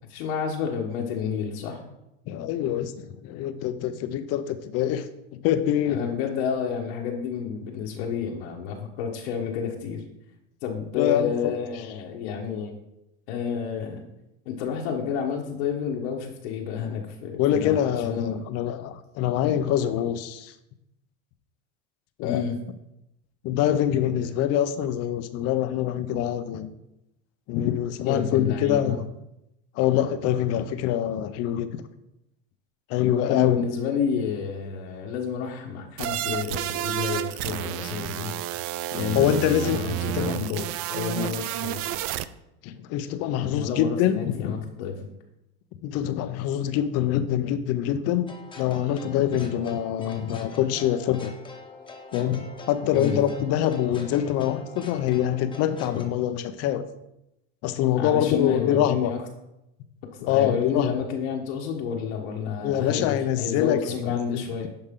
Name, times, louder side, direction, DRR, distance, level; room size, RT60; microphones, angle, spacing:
voice 1, 0.1-1.8 5.9-10.0 10.6-12.8 13.3-14.0 14.4-18.4 22.2-22.5 28.0-28.9 33.3-38.3 38.9-39.3 39.6-42.0 43.3-44.9 50.0-50.2 52.9-53.2 58.0-59.2 60.1-64.7, left 7 dB, 75° left, -1 dB, 1.4 m, -30 dB
voice 2, 2.3-6.0 11.0-11.3 17.4-20.5 22.2-22.4 23.4-26.7 27.5-29.0 29.8-31.7 32.9-33.6 39.1-40.4 42.6-44.5 45.8-48.3 48.6-51.3 52.1-56.8 57.6-59.1 60.3-60.9 62.6-64.4, left 10 dB, 45° left, 12 dB, 0.7 m, -25 dB
sound 1, 36.0-42.2, right 14 dB, 45° right, 0.4 m, -30 dB
sound 2, 48.3-56.1, left 3 dB, 15° left, 1.1 m, -44 dB
10.5 x 5.4 x 3.8 m, 0.88 s
supercardioid pair, 135°, 34 cm